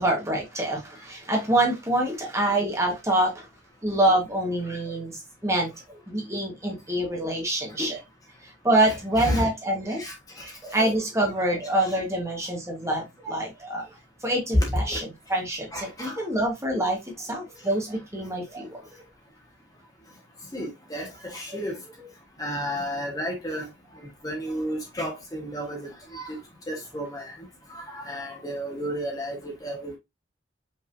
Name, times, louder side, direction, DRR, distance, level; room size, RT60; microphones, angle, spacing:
voice 1, 0.0-3.5 3.8-8.0 8.4-10.0 10.4-13.8 14.2-18.8 21.5-21.6, right 1 dB, 15° right, 1.4 m, -26 dB
voice 2, 9.2-9.5 10.0-10.1 11.8-11.9 14.9-15.0 15.7-16.1 20.5-21.8 22.4-23.7 24.2-26.4 26.7-27.3 27.7-30.0, equal, 20° left, 1.4 m, -32 dB
5.4 x 3.6 x 2.6 m
head